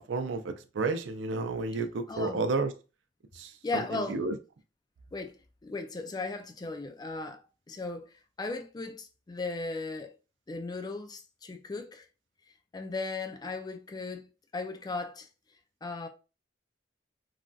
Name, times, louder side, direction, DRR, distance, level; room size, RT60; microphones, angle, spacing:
voice 1, 0.0-2.7 3.3-4.3, right 3 dB, 90° right, 0.4 m, -31 dB
voice 2, 2.1-2.4 3.6-4.2 5.1-7.4 7.7-10.2 10.5-12.1 12.7-15.3 15.8-16.1, left 3 dB, 20° left, 0.3 m, -37 dB
3.2 x 2.5 x 2.3 m
head